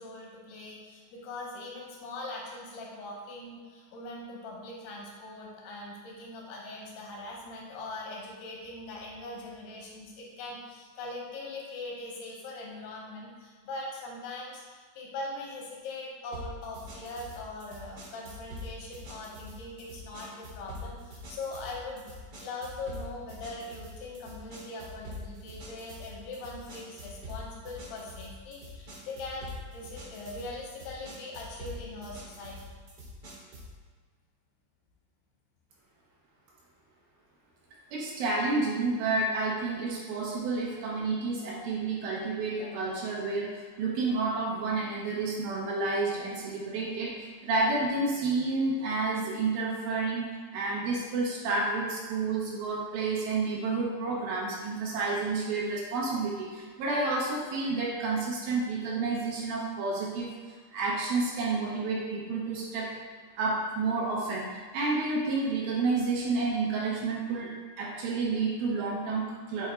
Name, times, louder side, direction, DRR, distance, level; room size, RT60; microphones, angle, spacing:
voice 1, 0.0-22.0 22.4-32.6 42.6-42.7, left 2 dB, 85° left, -2 dB, 3.0 m, -41 dB
sound 1, 16.3-33.8, left 1 dB, 60° right, 1.5 m, -44 dB
voice 2, 37.9-60.3 60.7-62.9 63.4-69.7, right 3 dB, 75° right, -3 dB, 2.4 m, -30 dB
8.0 x 2.8 x 4.3 m, 1.6 s
omnidirectional pair, 4.6 m